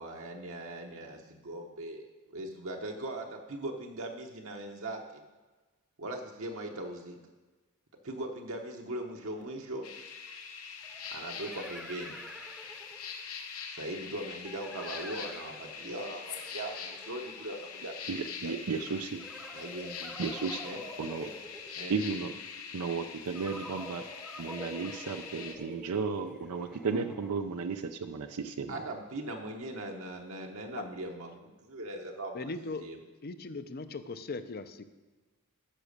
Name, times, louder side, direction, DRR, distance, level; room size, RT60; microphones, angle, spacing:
voice 1, 0.0-5.2 6.0-7.2 8.0-9.9 11.1-12.1 13.8-17.9 18.4-18.5 18.9-19.0 19.5-20.8 21.2-21.3 21.8-22.0 28.7-32.4 32.8-33.0, right 1 dB, 65° right, 1 dB, 0.9 m, -40 dB
sound 1, 9.4-9.5 10.8-13.2 14.4-17.9 19.1-22.2 23.3-27.6, equal, ahead, 0.7 m, -48 dB
sound 2, 9.8-25.5, left 6 dB, 70° left, 1.0 m, -43 dB
voice 2, 18.1-19.2 20.2-20.6 21.0-21.2 21.9-22.3 22.7-24.0 24.4-28.8, right 5 dB, 80° right, 7 dB, 0.5 m, -34 dB
voice 3, 32.3-32.8 33.2-34.8, left 3 dB, 45° left, 11 dB, 0.6 m, -38 dB
10.0 x 6.1 x 6.6 m, 1.2 s
head